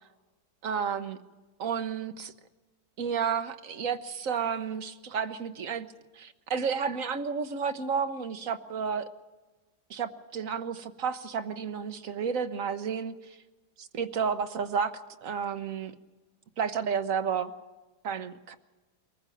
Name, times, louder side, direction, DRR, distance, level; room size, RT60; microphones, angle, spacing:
voice 1, 0.6-1.2 1.6-2.3 3.0-5.9 6.2-9.1 9.9-13.1 13.8-14.9 15.2-15.9 16.6-17.5 18.0-18.5, right 6 dB, 60° right, 9 dB, 1.4 m, -31 dB
23.0 x 15.0 x 9.1 m, 1.2 s
omnidirectional pair, 1.7 m